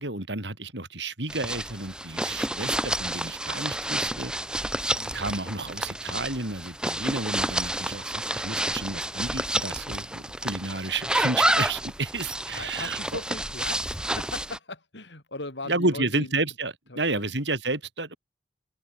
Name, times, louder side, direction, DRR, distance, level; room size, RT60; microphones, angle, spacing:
voice 1, 0.0-4.3 5.1-13.0 15.7-18.2, right 2 dB, 90° right, 7.8 m, -31 dB
sound 1, 1.3-14.6, right 1 dB, 5° right, 2.2 m, -30 dB
voice 2, 12.5-16.3 16.9-17.3, left 2 dB, 90° left, 6.7 m, -38 dB
open air
head